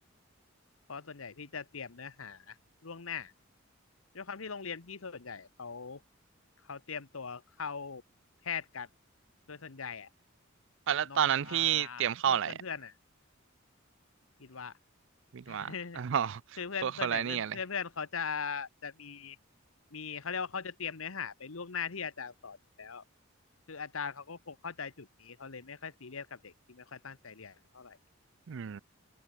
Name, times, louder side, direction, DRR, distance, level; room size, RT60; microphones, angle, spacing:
voice 1, 0.9-2.6 2.8-3.3 4.1-6.0 6.6-8.0 8.4-8.9 9.5-10.1 11.0-12.9 14.4-14.7 15.5-16.0 16.6-19.4 19.9-23.0 23.7-28.0, left 6 dB, 80° left, 1.2 m, -40 dB
voice 2, 10.9-12.5 15.3-17.6 28.5-28.8, right 9 dB, 65° right, 0.4 m, -30 dB
head